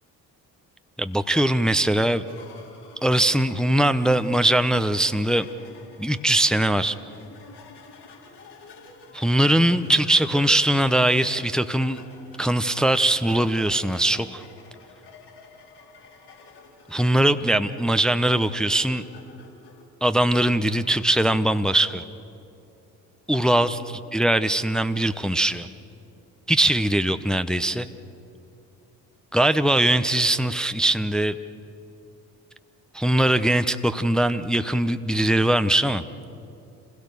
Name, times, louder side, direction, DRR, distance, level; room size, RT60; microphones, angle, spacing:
voice 1, 1.0-2.2 3.0-5.5 6.0-7.0 9.1-12.0 12.4-14.4 16.9-19.0 20.0-22.0 23.3-23.8 24.1-25.7 26.5-27.9 29.3-31.4 32.9-36.0, right 1 dB, ahead, 11 dB, 0.9 m, -21 dB
sound 1, 2.0-19.8, left 3 dB, 55° left, 4.7 m, -48 dB
29.5 x 16.5 x 6.8 m, 2.6 s
figure-of-eight pair, 45°, 46 cm